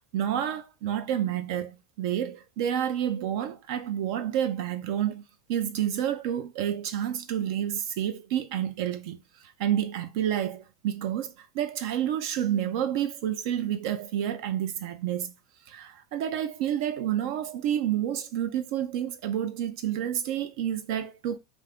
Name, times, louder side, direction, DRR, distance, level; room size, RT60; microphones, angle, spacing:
voice 1, 0.1-5.2 5.5-15.3 15.7-21.4, right 10 dB, 65° right, 0.4 m, -29 dB
2.4 x 2.4 x 3.4 m
hypercardioid pair, 105°, 2 cm